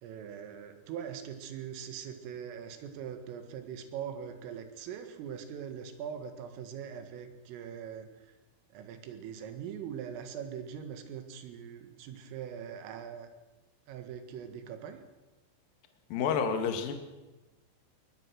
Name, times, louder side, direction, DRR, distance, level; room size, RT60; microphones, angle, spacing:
voice 1, 0.0-8.1 8.7-13.3 13.9-15.0, right 8 dB, 90° right, 8 dB, 4.4 m, -42 dB
voice 2, 16.1-16.9, left 6 dB, 55° left, 6 dB, 3.0 m, -29 dB
22.0 x 19.5 x 6.2 m, 1.1 s
omnidirectional pair, 5.7 m